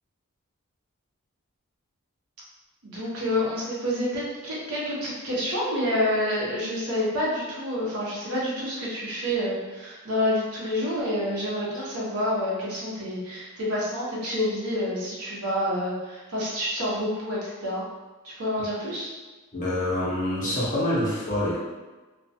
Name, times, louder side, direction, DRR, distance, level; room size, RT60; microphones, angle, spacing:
voice 1, 2.8-17.8 18.2-19.1, left 1 dB, 90° right, -6 dB, 0.9 m, -28 dB
voice 2, 19.5-21.6, left 1 dB, 35° left, -6 dB, 0.7 m, -26 dB
2.3 x 2.2 x 2.6 m, 1.2 s
head